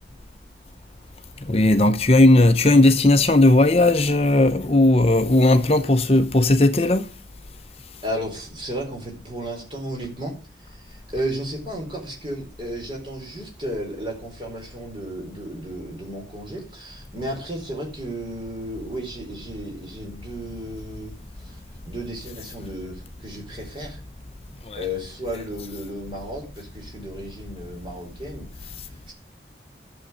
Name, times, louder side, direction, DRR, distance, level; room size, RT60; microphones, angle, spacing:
voice 1, 1.4-7.1 24.7-24.8, left 2 dB, 35° left, 0.8 m, -17 dB
voice 2, 8.0-10.3 10.6-21.6 21.8-24.0 24.7-29.1, equal, 30° right, 4.4 m, -33 dB
11.5 x 7.4 x 8.0 m
head